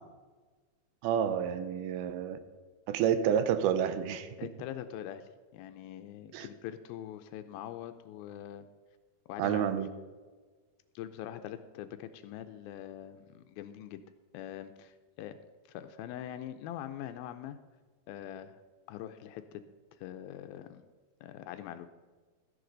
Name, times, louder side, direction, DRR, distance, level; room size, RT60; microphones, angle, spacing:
voice 1, 1.0-2.4 2.9-4.3 6.3-6.5 9.4-9.9, right 9 dB, 90° right, 11 dB, 2.6 m, -29 dB
voice 2, 4.4-8.7 9.3-9.8 11.0-14.0 14.3-15.4 15.7-17.6 18.1-18.6 18.9-19.6 19.9-20.8 21.2-21.9, left 11 dB, 80° left, 9 dB, 2.3 m, -43 dB
14.0 x 9.9 x 3.9 m, 1.4 s
omnidirectional pair, 4.4 m